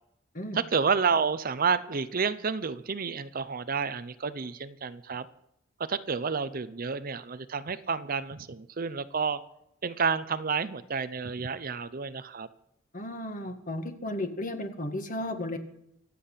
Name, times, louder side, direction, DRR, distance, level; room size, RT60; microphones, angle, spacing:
voice 1, 0.5-5.3 5.9-9.4 9.8-12.5, right 5 dB, 45° right, 13 dB, 0.7 m, -30 dB
voice 2, 12.9-15.6, left 1 dB, 40° left, 6 dB, 2.0 m, -34 dB
25.0 x 8.6 x 5.7 m, 0.77 s
head